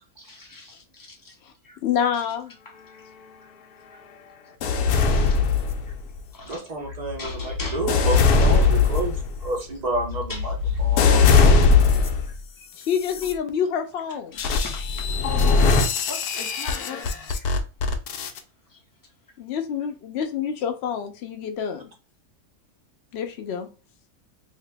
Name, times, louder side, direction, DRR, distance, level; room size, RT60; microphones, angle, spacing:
voice 1, 0.2-1.4 1.6-1.8 5.1-5.4 6.3-7.8 8.1-8.3 8.7-8.8 10.3-10.5 11.8-11.9 12.3-12.4 14.3-15.1 16.1-17.5 18.7-18.8, left 2 dB, 30° left, 0.4 m, -41 dB
voice 2, 1.8-2.5 12.8-14.4 19.4-21.9 23.1-23.7, left 8 dB, 60° left, 0.7 m, -27 dB
sound 1, 4.6-6.2 6.9-12.4 12.9-13.3 14.4-18.4, left 4 dB, 90° left, 1.1 m, -20 dB
voice 3, 6.5-11.5 17.2-17.4, right 2 dB, 50° right, 0.5 m, -30 dB
2.8 x 2.8 x 3.3 m
omnidirectional pair, 1.6 m